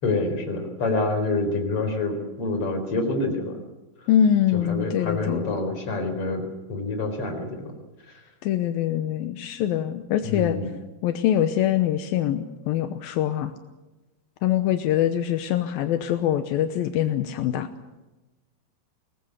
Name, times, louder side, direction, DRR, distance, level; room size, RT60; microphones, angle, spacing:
voice 1, 0.0-3.6 4.7-7.7 10.2-10.7, left 2 dB, 40° left, 5 dB, 5.0 m, -27 dB
voice 2, 4.1-5.4 8.4-10.6 11.0-13.5 14.4-17.7, left 10 dB, 80° left, 8 dB, 2.7 m, -24 dB
23.5 x 19.5 x 8.2 m, 1.1 s
omnidirectional pair, 4.3 m